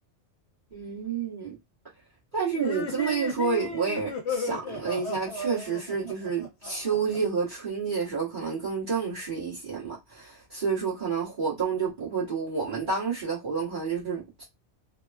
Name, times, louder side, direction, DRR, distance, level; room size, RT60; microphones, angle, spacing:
voice 1, 0.7-1.5 2.3-14.4, right 5 dB, 45° right, 1.4 m, -29 dB
sound 1, 2.5-7.2, left 3 dB, 75° left, 1.1 m, -35 dB
3.5 x 2.2 x 2.3 m
omnidirectional pair, 1.2 m